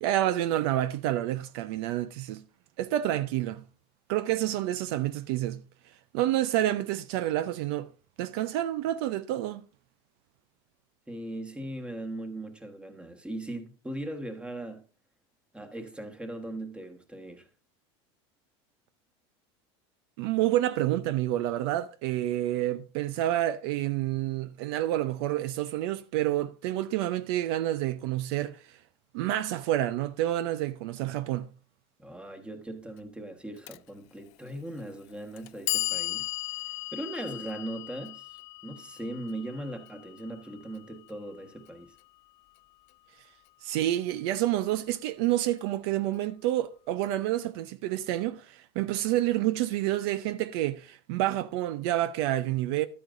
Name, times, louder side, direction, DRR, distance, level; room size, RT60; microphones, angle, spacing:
voice 1, 0.0-2.4 2.8-3.6 4.1-5.6 6.1-7.9 8.2-9.6 20.2-28.6 29.1-31.5 43.6-52.9, right 14 dB, 70° right, 0.6 m, -28 dB
voice 2, 11.1-14.8 15.5-17.5 32.0-36.3 36.9-41.9, right 1 dB, 10° right, 1.3 m, -39 dB
Clock, 33.7-33.8 34.7-34.8 35.4-41.4, left 18 dB, 55° left, 0.4 m, -36 dB
12.0 x 8.6 x 2.6 m
supercardioid pair, 125°, 14 cm